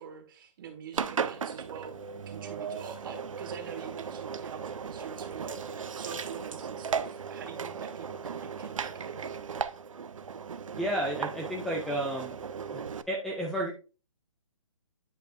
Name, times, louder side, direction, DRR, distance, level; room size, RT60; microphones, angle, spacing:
voice 1, 0.0-9.4, right 7 dB, 40° right, 5 dB, 1.6 m, -45 dB
Engine, 0.9-13.0, right 6 dB, 80° right, 0.6 m, -37 dB
voice 2, 10.8-12.4 12.7-12.8 13.1-13.8, right 1 dB, ahead, -2 dB, 0.4 m, -32 dB
9.0 x 5.2 x 2.5 m, 0.35 s
hypercardioid pair, 150°, 17 cm